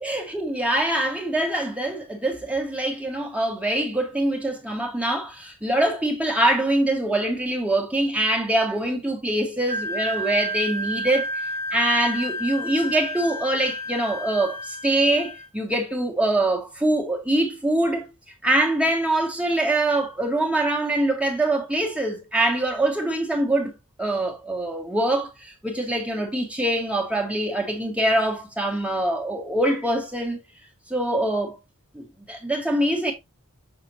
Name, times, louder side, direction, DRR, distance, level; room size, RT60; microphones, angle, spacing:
voice 1, 0.0-11.4 11.7-18.1 18.4-23.7 24.0-30.4 30.9-31.6 31.9-33.1, right 1 dB, 5° right, 1.6 m, -24 dB
Wind instrument woodwind instrument, 9.7-15.5, equal, 25° right, 1.4 m, -31 dB
6.7 x 6.2 x 2.8 m
head